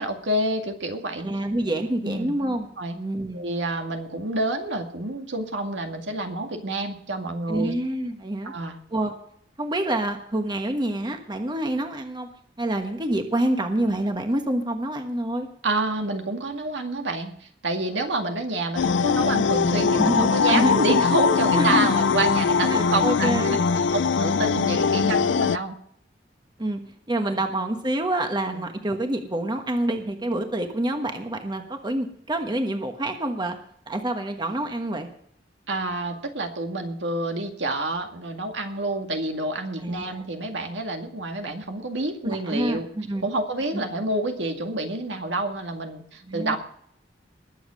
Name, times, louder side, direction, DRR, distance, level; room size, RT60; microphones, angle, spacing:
voice 1, 0.0-1.3 2.0-2.3 2.8-2.9 3.3-7.7 8.4-8.8 15.6-23.9 24.2-25.7 27.2-27.4 28.5-28.6 35.7-42.9 43.2-46.6, right 2 dB, 75° right, 4 dB, 2.1 m, -28 dB
voice 2, 1.2-2.7 2.9-3.4 7.5-8.5 8.9-9.1 9.6-12.3 12.6-15.5 20.0-20.7 21.5-21.9 22.7-23.6 26.6-26.8 27.1-33.6 33.9-35.1 39.8-40.2 42.2-43.3 43.7-43.8 46.3-46.6, right 1 dB, 25° right, 5 dB, 1.3 m, -27 dB
sound 1, 18.8-25.6, left 5 dB, 75° left, 0.5 m, -21 dB
21.0 x 7.3 x 6.4 m, 0.67 s
head